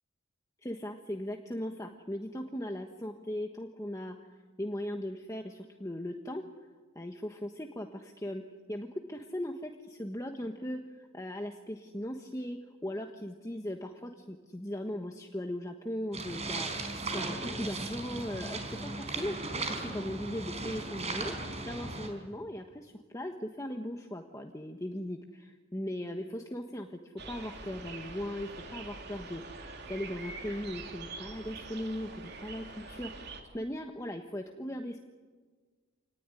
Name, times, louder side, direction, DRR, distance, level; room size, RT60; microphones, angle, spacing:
voice 1, 0.6-6.4 6.9-8.4 8.7-21.3 21.6-33.2 33.5-35.0, left 1 dB, 15° left, 4 dB, 1.3 m, -38 dB
sound 1, 16.1-22.1, right 3 dB, 30° right, 4.5 m, -37 dB
sound 2, 27.2-33.4, right 3 dB, 55° right, 3.2 m, -45 dB
28.0 x 19.0 x 9.9 m, 1.5 s
head